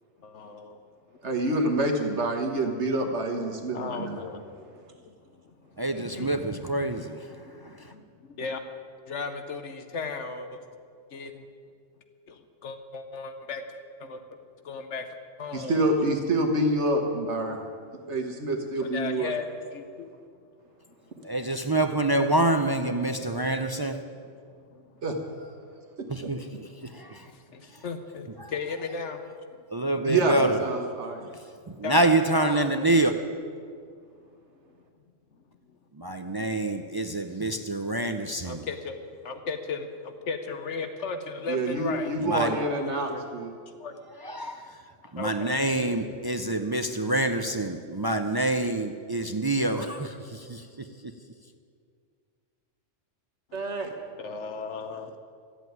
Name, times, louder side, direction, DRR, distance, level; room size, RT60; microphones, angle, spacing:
voice 1, 0.2-0.8 3.7-4.6 5.0-5.1 5.5-5.6 5.9-6.3 7.3-8.6 9.1-10.6 11.1-11.5 12.3-13.6 14.0-14.2 14.6-15.0 15.4-15.8 18.8-20.1 24.7-24.8 27.3-29.2 31.8-32.9 38.4-39.0 39.2-42.1 43.1-43.3 43.8-44.0 45.2-45.6 54.1-55.2, left 4 dB, 70° left, 7 dB, 1.2 m, -36 dB
voice 2, 1.2-4.2 15.5-17.6 18.1-19.3 25.0-25.5 26.0-26.3 30.0-31.3 41.5-43.5 53.5-53.9, right 2 dB, 65° right, 4 dB, 1.5 m, -27 dB
voice 3, 5.8-7.9 21.2-24.0 26.1-27.3 27.7-27.8 28.4-28.5 29.7-30.6 31.7-33.2 35.9-38.6 42.2-42.6 44.2-44.8 45.1-51.1, right 2 dB, 35° right, 7 dB, 0.3 m, -27 dB
13.5 x 8.2 x 9.3 m, 2.2 s
omnidirectional pair, 1.3 m